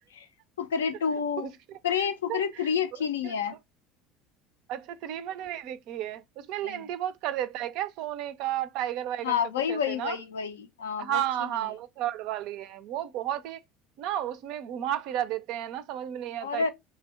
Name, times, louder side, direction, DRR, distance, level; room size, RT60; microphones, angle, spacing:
voice 1, 0.6-1.5 1.8-3.6 6.6-6.8 9.2-11.2 16.4-16.7, left 7 dB, 70° left, 0.4 m, -29 dB
voice 2, 2.3-2.7 3.0-3.3 4.7-9.4 9.7-10.2 11.0-13.6 14.0-16.7, right 11 dB, 55° right, 0.3 m, -33 dB
2.6 x 2.0 x 3.7 m
figure-of-eight pair, 65°, 0 cm